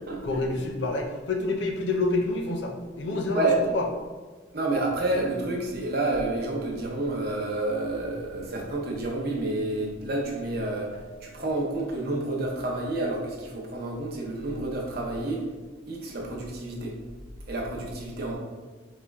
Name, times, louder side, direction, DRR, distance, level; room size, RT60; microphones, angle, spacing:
voice 1, 0.2-3.9, left 2 dB, 65° left, 3 dB, 0.5 m, -28 dB
voice 2, 4.5-10.9 11.2-15.5 15.9-17.0 17.5-18.4, right 2 dB, 55° right, -2 dB, 0.8 m, -29 dB
4.3 x 2.1 x 3.4 m, 1.4 s
head